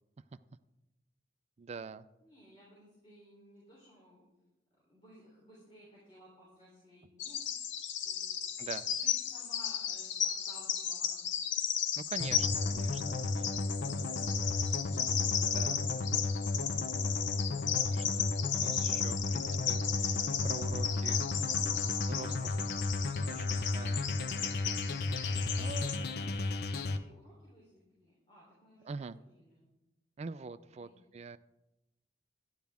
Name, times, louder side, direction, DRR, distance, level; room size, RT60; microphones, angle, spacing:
voice 1, 1.6-2.1 8.6-8.9 12.0-13.4 15.5-15.9 17.9-18.2 18.6-21.3 21.9-22.7 23.3-24.1 25.6-26.2 28.8-29.2 30.2-31.4, right 4 dB, 35° right, 14 dB, 0.3 m, -45 dB
voice 2, 2.2-4.3 4.8-7.4 8.0-8.5 8.8-11.2 21.7-22.1 27.0-29.7 30.7-31.1, equal, 30° left, -6 dB, 3.4 m, -59 dB
Bird vocalization bird call bird song, 7.2-26.0, left 8 dB, 85° left, 0.9 m, -35 dB
sound 1, 12.2-27.0, left 2 dB, 60° left, 0.6 m, -34 dB
12.0 x 10.5 x 3.5 m, 0.96 s
head